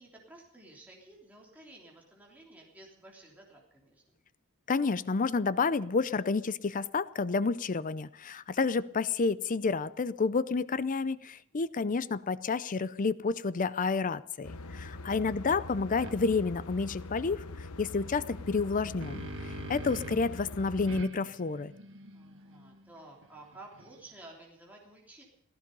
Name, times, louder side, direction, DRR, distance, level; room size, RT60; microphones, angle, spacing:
voice 1, 0.0-4.1 14.6-15.0 22.1-25.2, right 2 dB, 5° right, -3 dB, 3.3 m, -53 dB
voice 2, 4.7-21.7, left 4 dB, 35° left, 16 dB, 0.5 m, -30 dB
sound 1, 14.4-21.0, left 2 dB, 75° left, 1.0 m, -43 dB
sound 2, 16.0-16.2 18.6-20.4 20.9-24.2, right 1 dB, 60° right, 1.6 m, -45 dB
17.0 x 15.0 x 5.4 m, 0.70 s
head